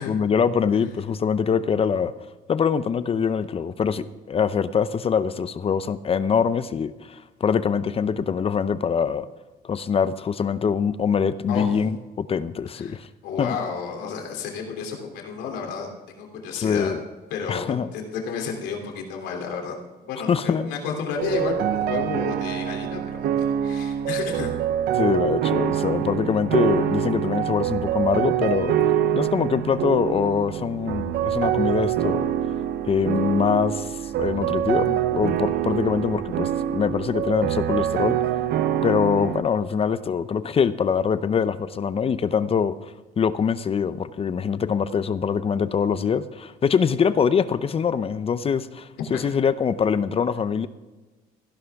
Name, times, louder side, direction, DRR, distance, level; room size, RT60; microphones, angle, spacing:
voice 1, 0.0-2.1 2.5-9.3 9.6-13.1 13.4-13.6 16.6-17.0 17.5-17.9 20.3-20.7 25.0-28.8 29.1-32.3 32.9-33.9 34.2-38.2 38.8-50.7, left 6 dB, 35° left, 14 dB, 0.6 m, -24 dB
voice 2, 11.5-11.8 12.7-13.0 13.2-17.0 17.3-19.8 20.0-23.3 23.6-24.5 49.1-49.2, left 5 dB, 85° left, 2 dB, 3.1 m, -31 dB
sound 1, 21.2-39.4, right 10 dB, 65° right, 0.8 m, -25 dB
16.5 x 11.0 x 3.5 m, 1.2 s
cardioid pair, 110°, 17 cm